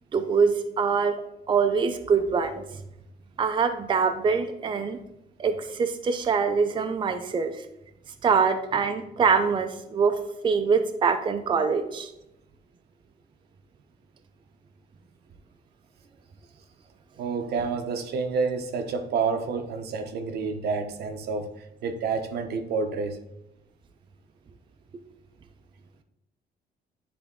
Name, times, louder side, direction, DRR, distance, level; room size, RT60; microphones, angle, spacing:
voice 1, 0.1-1.1 1.5-2.6 3.4-5.0 5.4-7.5 8.2-10.2 10.4-12.1, right 5 dB, 30° right, 6 dB, 0.5 m, -24 dB
voice 2, 17.2-23.2, right 5 dB, 75° right, 7 dB, 0.8 m, -29 dB
10.0 x 3.4 x 3.6 m, 0.88 s
cardioid pair, 125°, 17 cm